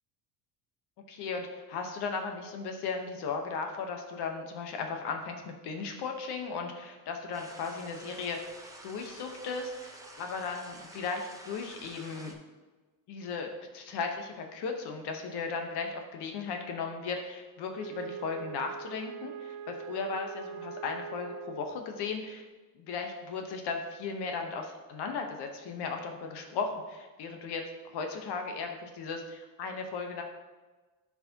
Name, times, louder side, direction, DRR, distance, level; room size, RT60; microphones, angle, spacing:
voice 1, 1.1-8.4 8.8-12.3 13.1-22.4 22.7-27.6 27.9-30.2, left 4 dB, 60° left, 4 dB, 1.2 m, -36 dB
sound 1, 7.3-12.3, right 1 dB, 5° right, 0.8 m, -49 dB
Wind instrument woodwind instrument, 17.7-21.9, right 8 dB, 70° right, 0.7 m, -43 dB
11.5 x 4.8 x 2.9 m, 1.3 s
cardioid pair, 115°, 45 cm